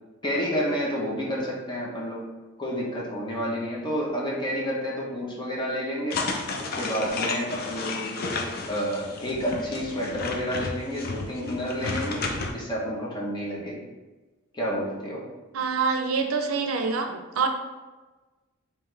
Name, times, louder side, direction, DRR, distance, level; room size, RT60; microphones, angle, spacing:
voice 1, 0.2-2.2 2.6-6.2 6.6-12.3 12.5-13.8 14.5-15.2, equal, 20° left, -4 dB, 0.8 m, -30 dB
sound 1, 6.1-12.5, left 3 dB, 45° left, 0.4 m, -32 dB
voice 2, 15.5-17.5, right 5 dB, 85° right, 5 dB, 0.5 m, -26 dB
3.7 x 3.0 x 3.2 m, 1.2 s
head